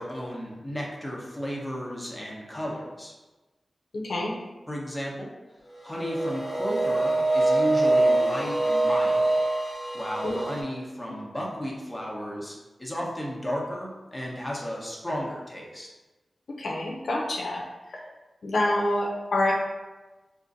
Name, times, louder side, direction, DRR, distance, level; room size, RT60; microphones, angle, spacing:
voice 1, 0.0-3.1 4.7-5.3 5.8-9.3 9.9-15.9, equal, 15° left, -3 dB, 1.0 m, -33 dB
voice 2, 3.9-4.3 10.2-10.4 16.5-17.6 17.9-18.0 18.4-19.5, left 1 dB, 80° left, -1 dB, 0.5 m, -27 dB
sound 1, 5.9-10.6, right 2 dB, 55° left, 1.0 m, -24 dB
4.3 x 2.5 x 2.6 m, 1.2 s
cardioid pair, 45°, 0 cm